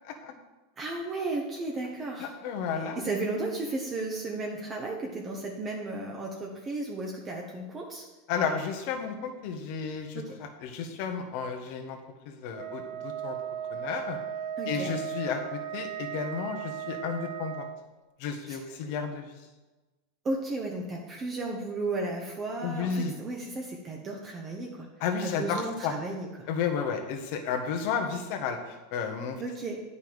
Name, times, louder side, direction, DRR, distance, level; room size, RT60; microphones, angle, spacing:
voice 1, 0.8-2.3 2.8-8.0 10.1-10.3 14.6-14.9 18.5-18.6 20.2-24.9 25.2-26.5 29.4-29.8, right 2 dB, 30° right, -1 dB, 1.2 m, -34 dB
voice 2, 2.2-3.0 8.3-12.0 12.2-13.4 13.7-14.2 14.7-17.6 18.2-19.3 22.6-23.1 25.0-26.0 26.5-29.4, left 6 dB, 60° left, 5 dB, 1.3 m, -32 dB
Wind instrument woodwind instrument, 12.5-17.8, right 9 dB, 55° right, 0.5 m, -36 dB
9.0 x 5.6 x 4.9 m, 1.1 s
hypercardioid pair, 110°, 0 cm